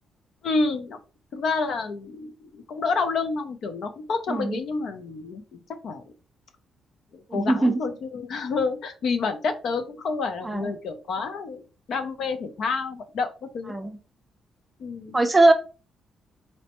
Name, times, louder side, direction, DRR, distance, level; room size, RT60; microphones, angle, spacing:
voice 1, 0.4-1.0 1.3-6.0 7.1-11.6 11.9-13.7 14.8-15.2, left 4 dB, 60° left, 8 dB, 0.5 m, -29 dB
voice 2, 4.3-4.6 7.3-7.7 10.4-10.7 13.7-14.0 15.1-15.5, right 2 dB, 15° right, 5 dB, 0.5 m, -20 dB
4.1 x 2.1 x 2.8 m, 0.35 s
cardioid pair, 145°, 0 cm